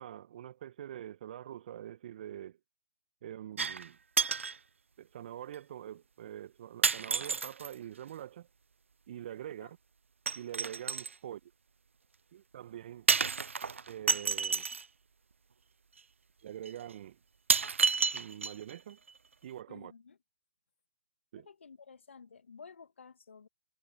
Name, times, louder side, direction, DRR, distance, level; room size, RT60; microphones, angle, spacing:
voice 1, 0.0-2.6 3.2-4.0 5.0-8.5 9.1-9.8 10.3-11.5 12.3-13.1 13.9-14.7 16.4-17.2 18.1-19.0 19.4-19.9 21.3-21.5, right 11 dB, 45° right, 1.6 m, -45 dB
sound 1, 3.6-3.9 4.2-4.6 5.5-5.6 6.8-7.7 10.3-11.1 13.1-14.8 16.0-16.1 16.6-16.7 17.5-18.7 19.1-19.2, right 5 dB, 75° right, 0.4 m, -30 dB
voice 2, 19.7-20.2 21.3-23.5, left 5 dB, 65° left, 1.9 m, -53 dB
figure-of-eight pair, 130°, 7 cm